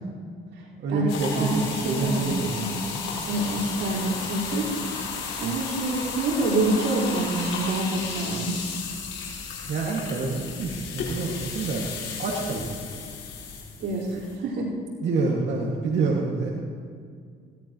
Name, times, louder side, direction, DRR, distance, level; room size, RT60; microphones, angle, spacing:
voice 1, 0.8-2.6 9.7-11.8 12.2-12.8 14.1-14.2 15.0-16.5, right 4 dB, 65° right, -3 dB, 2.2 m, -27 dB
sound 1, 1.1-14.3, left 5 dB, 90° left, 5.0 m, -34 dB
voice 2, 1.3-2.7 3.2-4.7 5.4-8.7 13.8-14.1 14.4-14.7, right 2 dB, 90° right, -7 dB, 4.8 m, -26 dB
20.5 x 17.5 x 3.1 m, 2.2 s
cardioid pair, 90°, 20 cm